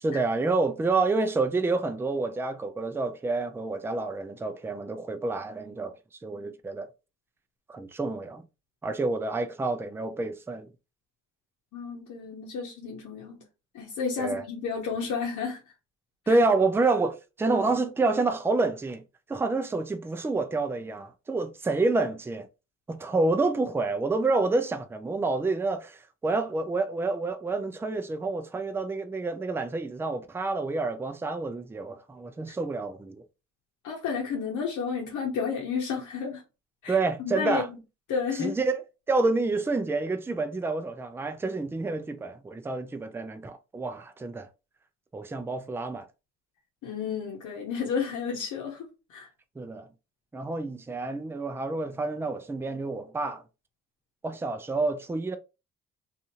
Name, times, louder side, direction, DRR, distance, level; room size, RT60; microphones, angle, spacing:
voice 1, 0.0-5.9 6.2-6.9 7.7-8.4 8.8-10.7 14.2-14.4 16.3-19.0 19.3-22.5 22.9-26.0 26.2-33.2 36.9-37.7 38.3-44.5 45.1-46.1 49.6-49.9 50.3-53.4 54.2-55.4, right 3 dB, 10° right, 0.3 m, -28 dB
voice 2, 11.7-13.4 13.7-15.6 16.3-16.4 33.8-36.4 36.8-37.0 37.2-37.6 38.1-38.6 46.8-49.3, left 6 dB, 75° left, 0.8 m, -31 dB
2.6 x 2.4 x 2.8 m
cardioid pair, 90°, 30 cm